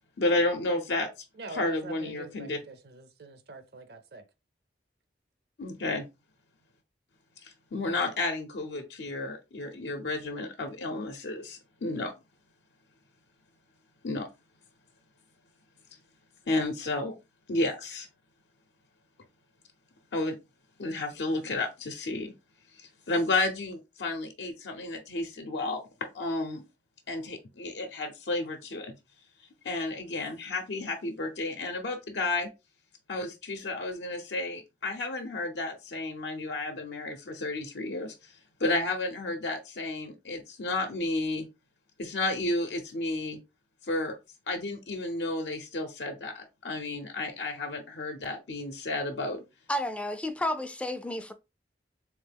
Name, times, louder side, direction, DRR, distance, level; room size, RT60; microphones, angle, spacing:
voice 1, 0.2-1.1 1.5-2.6 5.6-6.1 7.4-12.1 14.0-14.3 16.5-17.2 17.5-18.1 20.1-20.4 20.8-22.3 22.8-25.8 26.1-26.6 27.1-28.9 29.6-32.5 33.1-38.3 38.6-41.5 42.0-43.4 43.8-44.2 44.5-49.4, left 2 dB, 75° left, 0.6 m, -32 dB
voice 2, 1.4-4.2, right 3 dB, 60° right, 0.5 m, -44 dB
voice 3, 49.7-51.3, left 1 dB, 5° left, 0.3 m, -31 dB
3.5 x 3.0 x 3.4 m
head